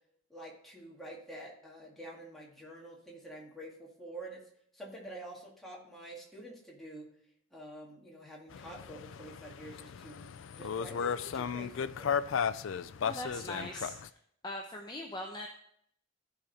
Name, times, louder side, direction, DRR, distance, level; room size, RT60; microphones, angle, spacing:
voice 1, 0.3-4.4 4.7-7.1 7.5-10.3 10.6-12.2, right 1 dB, ahead, -4 dB, 2.0 m, -47 dB
sound 1, 8.5-14.1, left 7 dB, 65° left, 0.4 m, -35 dB
voice 2, 13.0-14.1 14.4-15.5, left 1 dB, 20° left, 2 dB, 0.6 m, -41 dB
14.0 x 5.1 x 4.1 m, 0.68 s
head